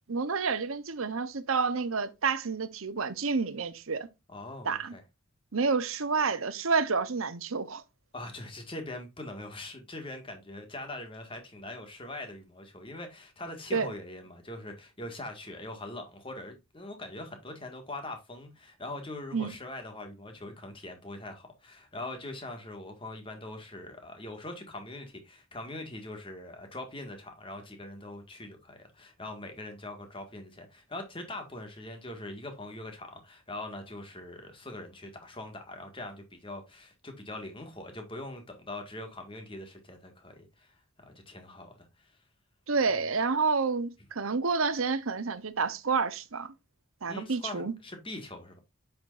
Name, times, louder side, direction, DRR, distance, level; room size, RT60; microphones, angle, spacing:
voice 1, 0.1-4.1 4.6-5.0 5.5-7.8 13.7-13.9 19.3-19.5 42.7-46.5 47.0-47.7, right 4 dB, 80° right, 0.9 m, -29 dB
voice 2, 4.3-5.0 8.1-40.7 41.0-42.1 47.1-48.6, left 2 dB, 25° left, 1.9 m, -42 dB
8.5 x 6.5 x 2.6 m
head